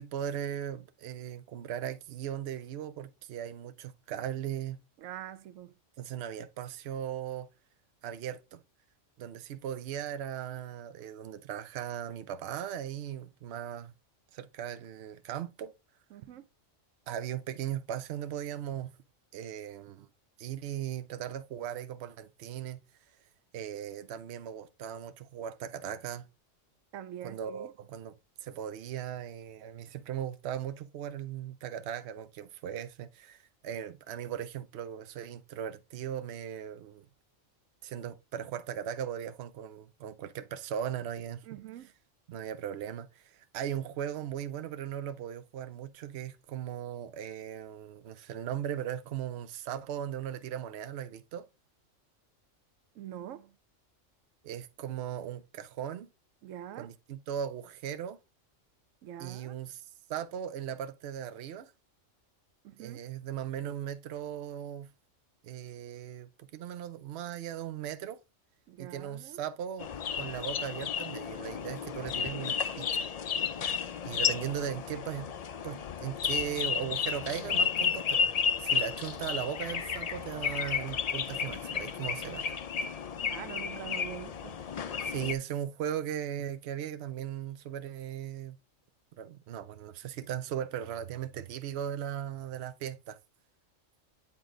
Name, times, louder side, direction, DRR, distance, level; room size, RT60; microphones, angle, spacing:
voice 1, 0.0-4.8 6.0-7.5 8.0-8.6 9.2-13.9 14.3-15.7 17.1-18.9 19.3-20.1 20.4-22.8 23.5-26.3 27.2-28.1 28.4-37.0 37.8-41.4 42.3-51.5 54.4-56.1 56.8-58.2 59.2-59.8 60.1-61.7 62.8-64.9 65.4-68.2 68.8-73.1 74.0-75.3 75.6-78.2 78.6-82.6 85.0-88.6 89.2-93.2, right 10 dB, 60° right, 0.9 m, -38 dB
voice 2, 5.0-5.7 16.1-16.5 26.9-27.7 41.4-41.9 53.0-53.5 56.4-56.9 59.0-59.6 62.6-63.0 68.7-69.4 83.3-84.7, right 11 dB, 90° right, 1.0 m, -44 dB
sound 1, 69.8-85.3, left 6 dB, 85° left, 0.3 m, -32 dB
8.5 x 3.8 x 3.7 m
omnidirectional pair, 1.3 m